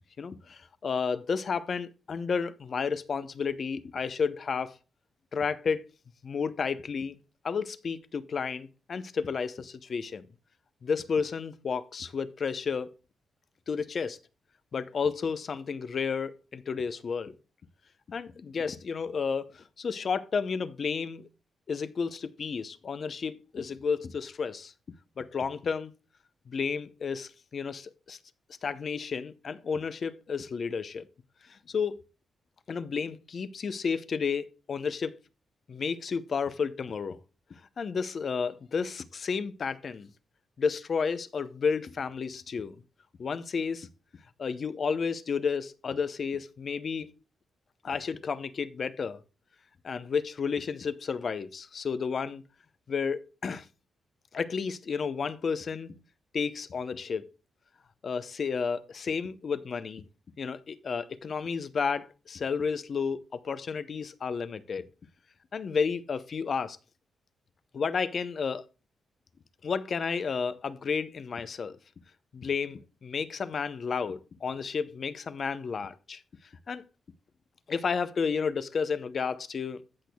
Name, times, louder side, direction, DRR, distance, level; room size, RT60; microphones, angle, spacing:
voice 1, 0.2-4.7 5.3-5.8 6.2-10.3 10.8-12.9 13.7-14.2 14.7-17.3 18.1-21.3 21.7-24.7 25.2-25.9 26.5-28.2 28.6-31.1 31.5-32.0 32.7-35.2 35.7-37.2 37.8-40.1 40.6-42.8 43.2-43.9 44.4-47.1 47.8-49.2 49.8-52.4 52.9-53.7 54.3-56.0 56.3-57.3 58.0-60.1 60.4-64.9 65.5-66.8 67.7-68.6 69.6-71.8 72.3-76.2 76.7-76.8 77.7-79.8, left 5 dB, 50° left, 0.6 m, -32 dB
15.0 x 6.1 x 2.2 m
cardioid pair, 115°, 0 cm